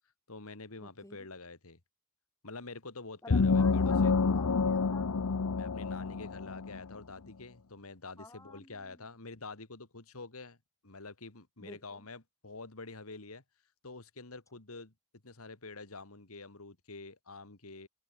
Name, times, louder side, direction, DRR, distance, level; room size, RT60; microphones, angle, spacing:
voice 1, 0.3-1.8 2.4-4.1 5.5-10.6 10.8-13.4 13.8-14.9 15.2-17.9, left 3 dB, 70° left, 2.2 m, -47 dB
voice 2, 0.8-1.3 3.2-5.1 8.2-9.1 11.6-12.1, left 2 dB, 15° left, 6.7 m, -52 dB
sound 1, 3.3-6.9, left 4 dB, 90° left, 0.7 m, -28 dB
head